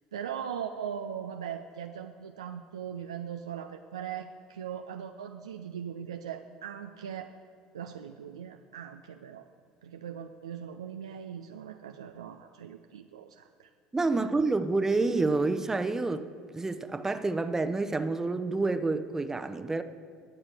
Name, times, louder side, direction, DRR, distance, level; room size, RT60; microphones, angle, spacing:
voice 1, 0.1-7.4 7.7-9.5 9.8-13.7 14.2-14.3, right 8 dB, 85° right, 0.4 m, -40 dB
voice 2, 13.9-16.3 16.5-19.8, right 3 dB, 15° right, 0.8 m, -28 dB
21.0 x 7.2 x 3.5 m
hypercardioid pair, 70°, 3 cm